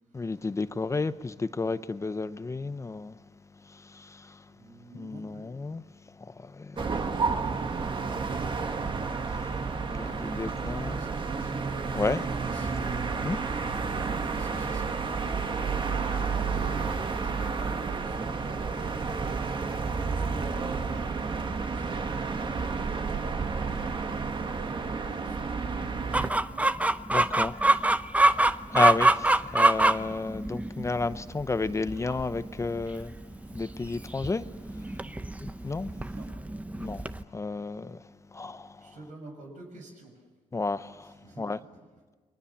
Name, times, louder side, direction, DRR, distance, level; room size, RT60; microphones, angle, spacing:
voice 1, 0.1-3.1 3.9-4.1 4.9-5.8 6.4-6.8 7.1-7.2 9.9-10.9 11.9-12.3 13.2-13.4 27.1-27.5 28.7-33.1 33.5-34.4 35.4-35.9 36.8-37.0 37.3-38.0 38.3-38.7 40.5-41.1 41.4-41.6, left 3 dB, 25° left, 0.7 m, -31 dB
voice 2, 4.5-5.5 9.9-12.7 13.8-26.8 36.1-36.3 38.8-40.1 41.0-41.4, right 2 dB, 90° right, 6.5 m, -45 dB
sound 1, 6.8-26.3, right 4 dB, 40° right, 1.5 m, -31 dB
Chicken rooster, 26.1-37.2, right 2 dB, 10° right, 0.7 m, -26 dB
29.0 x 22.5 x 7.2 m
cardioid pair, 110°, 13 cm